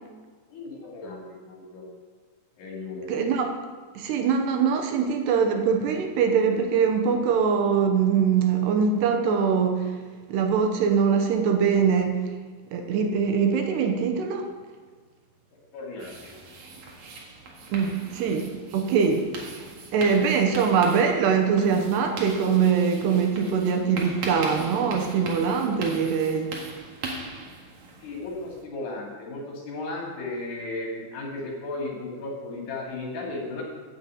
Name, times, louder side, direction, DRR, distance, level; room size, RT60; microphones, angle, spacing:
voice 1, 0.5-1.8 2.6-3.1 15.7-16.3 28.0-33.6, left 2 dB, 65° left, -2 dB, 4.6 m, -35 dB
voice 2, 3.1-3.5 4.0-9.9 10.3-12.3 12.7-14.5 17.7-19.7 19.9-26.6, right 6 dB, 75° right, 4 dB, 2.9 m, -23 dB
sound 1, 16.0-28.6, right 3 dB, 55° right, 2.4 m, -40 dB
9.5 x 9.2 x 7.8 m, 1.5 s
omnidirectional pair, 5.1 m